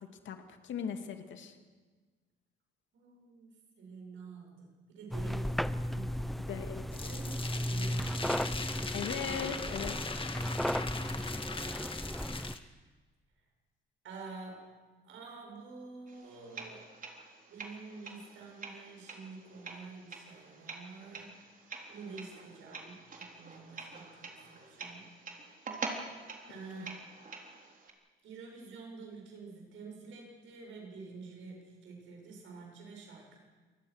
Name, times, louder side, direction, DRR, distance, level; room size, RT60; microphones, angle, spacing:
voice 1, 0.0-1.6 6.5-7.1 8.9-10.0 26.7-26.9, left 7 dB, 70° left, 6 dB, 2.5 m, -39 dB
voice 2, 2.9-6.7 7.0-8.4 11.5-12.0 14.0-16.9 17.5-21.6 21.9-25.1 26.2-27.0 28.2-33.4, right 4 dB, 80° right, 1 dB, 7.6 m, -49 dB
sound 1, 5.1-12.6, equal, ahead, 0.7 m, -35 dB
sound 2, 6.9-12.6, left 4 dB, 25° left, 1.8 m, -40 dB
sound 3, 16.1-27.9, right 3 dB, 45° right, 3.9 m, -46 dB
26.5 x 20.5 x 6.5 m, 1.4 s
cardioid pair, 90°, 20 cm